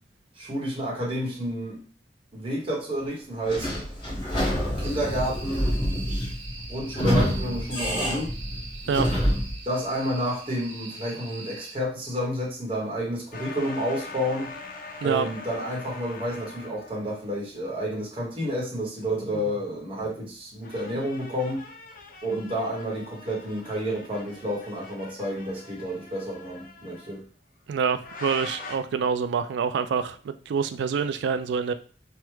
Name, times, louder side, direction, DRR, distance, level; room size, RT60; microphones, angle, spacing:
voice 1, 0.4-1.8 2.3-3.7 4.7-5.7 6.7-8.3 9.7-14.5 15.0-21.6 22.2-27.2, equal, 30° right, 0.9 m, -30 dB
Sliding door / Squeak, 3.5-9.6, equal, 25° left, 1.2 m, -27 dB
sound 1, 4.8-11.7, right 3 dB, 90° right, 0.7 m, -43 dB
sound 2, 13.3-17.2 19.1-19.7 20.6-27.2 28.0-28.8, left 3 dB, 50° left, 0.6 m, -43 dB
voice 2, 27.7-31.7, right 6 dB, 65° right, 0.3 m, -26 dB
3.4 x 2.1 x 3.1 m
head